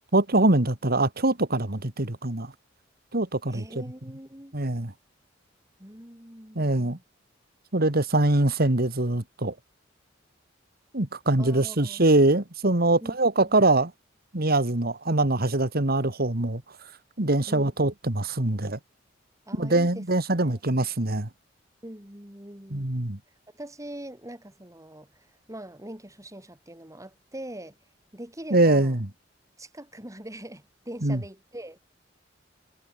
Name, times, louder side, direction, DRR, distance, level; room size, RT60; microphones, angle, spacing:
voice 1, 0.1-2.5 3.1-3.8 4.5-4.9 6.6-7.0 7.7-9.5 10.9-13.9 14.3-16.6 17.2-18.8 19.6-21.3 22.7-23.2 28.5-29.0 31.0-31.2, right 2 dB, 55° right, 2.4 m, -23 dB
voice 2, 3.5-4.6 5.8-7.0 11.4-12.0 13.0-13.6 17.5-17.8 19.5-20.0 20.3-20.6 21.8-22.9 23.5-27.8 28.1-29.0 29.6-31.8, right 1 dB, 15° right, 7.2 m, -42 dB
head